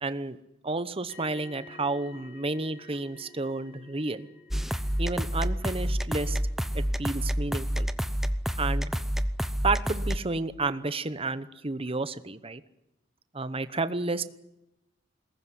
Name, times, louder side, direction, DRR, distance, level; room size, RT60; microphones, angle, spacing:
voice 1, 0.0-0.4 0.6-4.3 5.0-6.4 6.7-7.9 8.6-8.9 9.6-12.6 13.3-14.2, right 3 dB, 30° right, 13 dB, 1.0 m, -31 dB
sound 1, 1.1-9.0 9.2-9.5, left 4 dB, 90° left, 7.8 m, -54 dB
sound 2, 4.5-10.2, equal, ahead, 0.8 m, -28 dB
22.0 x 19.5 x 9.9 m, 0.95 s
head